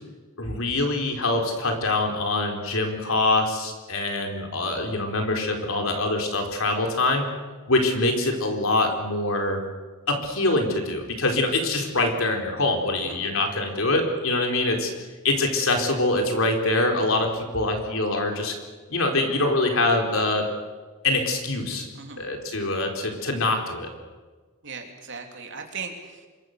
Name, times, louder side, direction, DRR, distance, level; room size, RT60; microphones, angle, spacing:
voice 1, 0.4-7.3 7.7-9.6 10.1-14.9 15.2-18.5 18.9-20.5 21.0-21.9 22.2-23.9, left 2 dB, 70° left, 3 dB, 4.2 m, -24 dB
voice 2, 13.0-13.4 22.0-22.3 24.6-26.3, right 5 dB, 60° right, 3 dB, 3.5 m, -38 dB
26.5 x 22.5 x 6.8 m, 1.4 s
head